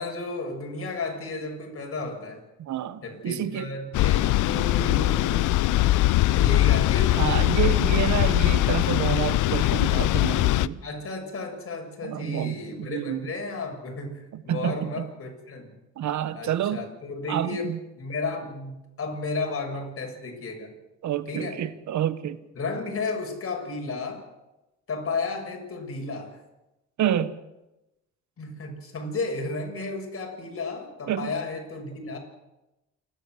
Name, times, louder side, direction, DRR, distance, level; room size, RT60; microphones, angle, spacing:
voice 1, 0.0-2.5 3.0-5.7 6.3-7.4 10.8-15.8 16.3-20.7 21.3-21.6 22.6-24.3 24.9-26.4 28.4-32.2, left 3 dB, 50° left, 7.0 m, -33 dB
voice 2, 2.6-3.7 7.2-10.8 12.0-13.3 14.3-15.0 16.0-16.8 17.3-17.8 21.0-22.4 27.0-27.4 31.1-31.3, right 10 dB, 70° right, 1.4 m, -28 dB
sound 1, 3.9-10.7, left 16 dB, 80° left, 0.7 m, -21 dB
29.0 x 13.0 x 7.7 m
cardioid pair, 90°, 30 cm